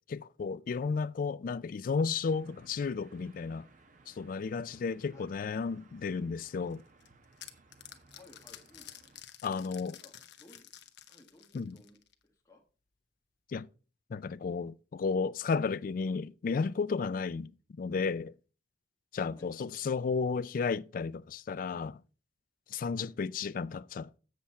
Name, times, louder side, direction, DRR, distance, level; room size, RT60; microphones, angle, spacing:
voice 1, 0.1-3.7 4.1-6.8 9.4-10.0 11.5-11.8 13.5-13.7 14.1-17.5 17.8-18.3 19.1-22.0 22.7-24.1, left 5 dB, 50° left, 0.3 m, -33 dB
sound 1, 2.3-9.2, right 3 dB, 45° right, 1.0 m, -62 dB
sound 2, 6.7-12.2, left 11 dB, 70° left, 0.9 m, -51 dB
voice 2, 8.1-8.9 9.9-10.1 10.4-10.7 11.1-12.0 12.2-12.6 19.3-19.5 23.0-23.1, left 2 dB, 20° left, 1.3 m, -58 dB
7.6 x 7.2 x 4.2 m
head